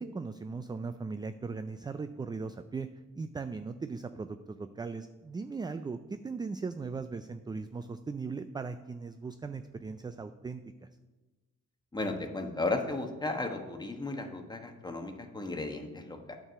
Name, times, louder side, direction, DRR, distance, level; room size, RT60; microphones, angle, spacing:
voice 1, 0.0-2.9 3.1-10.6, right 4 dB, 15° right, 10 dB, 0.3 m, -38 dB
voice 2, 11.9-16.4, left 2 dB, 15° left, 4 dB, 1.2 m, -35 dB
8.8 x 4.7 x 6.8 m, 1.2 s
cardioid pair, 90°, 30 cm